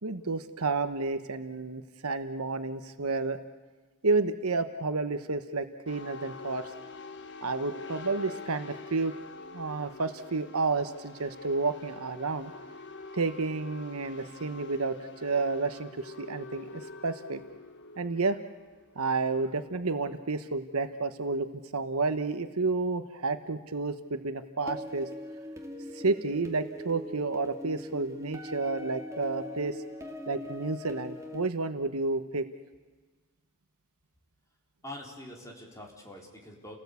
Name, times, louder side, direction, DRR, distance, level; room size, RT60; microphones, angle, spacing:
voice 1, 0.0-3.4 4.0-6.7 7.4-9.1 9.5-12.5 13.1-17.4 18.0-18.4 18.9-21.5 21.7-25.1 25.9-29.8 30.3-32.5, right 3 dB, 75° right, 9 dB, 1.2 m, -31 dB
sound 1, 5.9-20.1, left 3 dB, 55° left, 1.4 m, -46 dB
sound 2, 24.7-31.5, equal, 15° right, 2.3 m, -41 dB
voice 2, 34.8-36.8, left 1 dB, 15° left, -1 dB, 4.2 m, -44 dB
30.0 x 18.0 x 8.4 m, 1.4 s
head